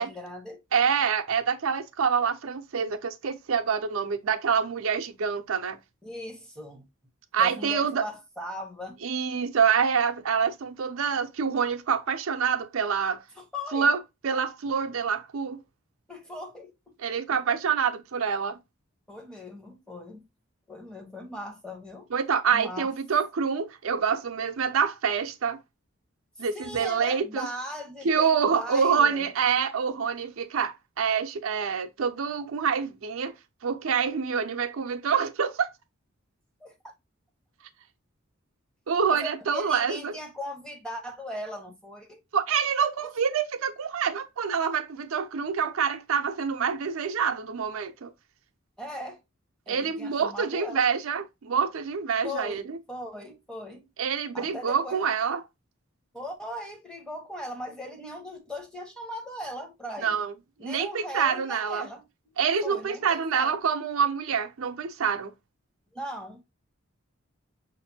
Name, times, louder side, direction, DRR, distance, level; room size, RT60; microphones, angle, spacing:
voice 1, 0.0-0.6 6.0-6.8 7.4-9.0 13.4-13.9 16.1-17.4 19.1-20.2 20.7-22.1 22.5-22.9 26.4-29.3 36.6-36.9 39.1-42.2 48.8-49.2 49.7-50.8 52.2-53.9 54.3-55.1 56.1-60.2 60.6-63.6 65.9-66.4, left 1 dB, 5° left, 0.8 m, -39 dB
voice 2, 0.7-5.8 7.3-8.0 9.0-13.2 13.7-15.6 17.0-18.6 22.1-25.6 26.4-27.5 28.0-33.3 33.6-35.7 38.9-40.1 42.3-48.1 49.7-52.8 54.0-55.4 60.0-60.3 60.6-61.9 62.4-65.3, right 6 dB, 75° right, 0.5 m, -26 dB
5.7 x 2.6 x 2.6 m
head